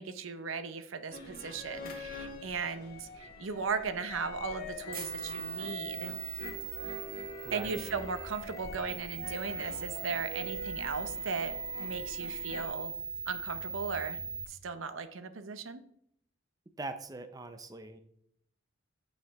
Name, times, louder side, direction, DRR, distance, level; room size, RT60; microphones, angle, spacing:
voice 1, 0.0-6.1 7.5-12.9 13.3-14.2 14.5-15.8, right 5 dB, 80° right, 11 dB, 0.6 m, -37 dB
sound 1, 1.1-12.7, left 2 dB, 50° left, 1.8 m, -44 dB
sound 2, 4.9-14.4, right 4 dB, 45° right, 1.1 m, -40 dB
voice 2, 7.4-7.8 16.8-18.0, right 2 dB, 20° right, 9 dB, 0.5 m, -41 dB
9.3 x 6.5 x 3.5 m, 0.71 s
head